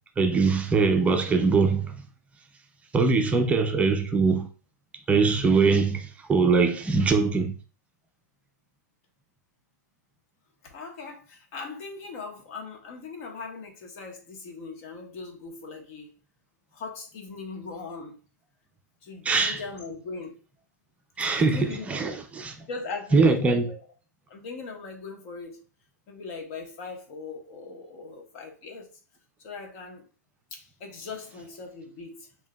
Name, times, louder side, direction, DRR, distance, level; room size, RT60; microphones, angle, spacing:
voice 1, 0.2-1.9 2.9-4.5 5.1-7.5 19.3-19.6 21.2-22.6 23.1-23.6, right 4 dB, 15° right, 0.6 m, -22 dB
voice 2, 10.6-16.1 16.7-18.2 19.0-20.4 21.2-21.9 22.7-23.9 24.3-25.6 26.1-28.9 29.4-30.0 30.5-32.3, left 4 dB, 45° left, 1.4 m, -39 dB
7.1 x 2.9 x 2.3 m
hypercardioid pair, 120°, 10 cm